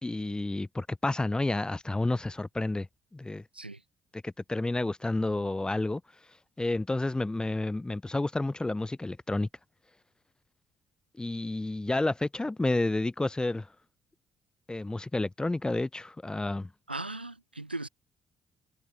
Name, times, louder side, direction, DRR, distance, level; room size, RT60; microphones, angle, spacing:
voice 1, 0.0-2.9 3.1-3.4 4.1-6.0 6.6-9.5 11.2-13.7 14.7-16.7, left 2 dB, 15° left, 1.3 m, -30 dB
voice 2, 16.9-17.9, right 2 dB, 90° right, 0.7 m, -38 dB
figure-of-eight pair, 40°, 5 cm